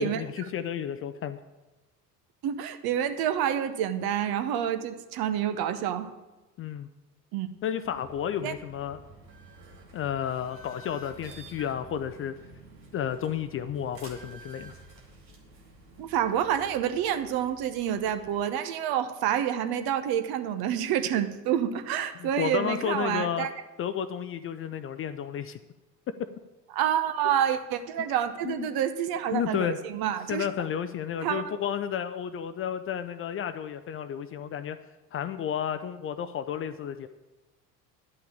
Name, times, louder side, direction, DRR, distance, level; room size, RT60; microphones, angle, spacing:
voice 1, 0.0-1.4 6.6-6.9 7.6-9.0 9.9-12.3 12.9-14.7 22.2-23.5 23.8-25.6 26.1-26.3 28.4-28.8 29.3-29.8 30.3-34.8 35.1-37.1, left 9 dB, 30° left, 11 dB, 0.5 m, -32 dB
voice 2, 2.4-6.1 7.3-7.5 8.4-8.5 16.0-23.5 26.7-30.5 31.2-31.4, right 10 dB, 50° right, 10 dB, 1.1 m, -28 dB
sound 1, 7.8-18.4, right 2 dB, 80° right, 2.0 m, -50 dB
10.5 x 5.8 x 8.6 m, 1.1 s
figure-of-eight pair, 65°, 49 cm